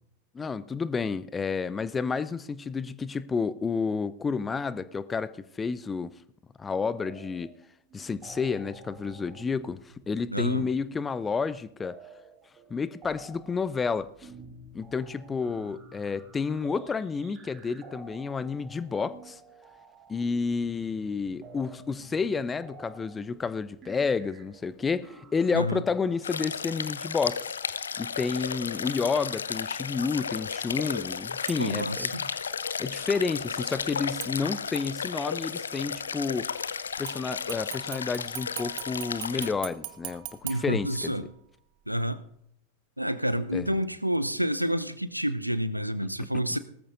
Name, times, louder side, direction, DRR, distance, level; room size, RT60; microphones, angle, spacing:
voice 1, 0.3-5.3 5.6-6.1 6.6-7.5 7.9-9.8 10.1-12.0 12.7-14.3 14.7-19.4 20.1-27.4 28.0-32.3 32.8-36.5 37.0-40.2 40.6-41.1 43.5-43.8, left 5 dB, 15° left, 16 dB, 0.5 m, -30 dB
sound 1, 7.0-7.6 7.9-26.2, right 3 dB, 30° right, 2.7 m, -51 dB
voice 2, 10.3-10.6 25.5-25.8 31.6-32.2 40.4-41.3 41.9-42.2 43.0-46.6, equal, 90° right, 14 dB, 0.6 m, -29 dB
sound 2, 26.2-39.5, left 6 dB, 70° left, 0.5 m, -34 dB
sound 3, 31.5-31.9 34.2-34.9 37.1-41.4 41.9-42.0, right 16 dB, 45° right, 0.9 m, -42 dB
19.0 x 13.5 x 2.6 m, 0.74 s
figure-of-eight pair, 90°, 0 cm